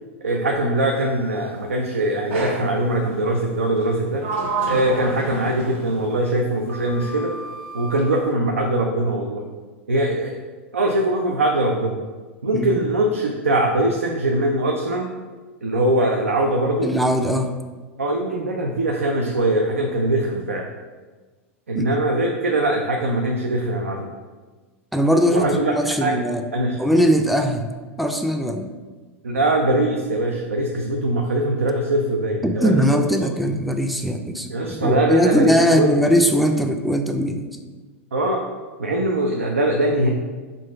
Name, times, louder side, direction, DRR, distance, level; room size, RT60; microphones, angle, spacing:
voice 1, 0.2-4.3 4.7-7.3 7.7-9.4 9.9-10.4 10.7-12.0 12.4-15.1 15.6-16.9 18.0-20.7 21.7-24.1 25.3-25.7 26.0-26.2 26.5-26.8 29.2-33.0 34.5-36.0 38.1-38.4 38.8-40.1, right 1 dB, 90° right, 1 dB, 0.4 m, -22 dB
Sliding door, 2.3-2.8 3.8-6.2 6.7-8.1, right 3 dB, 70° right, 0.7 m, -30 dB
voice 2, 16.8-17.6 21.7-22.0 24.9-26.4 26.8-28.7 32.4-37.6, equal, ahead, 5 dB, 0.3 m, -20 dB
3.8 x 2.5 x 4.3 m, 1.4 s
hypercardioid pair, 95°, 7 cm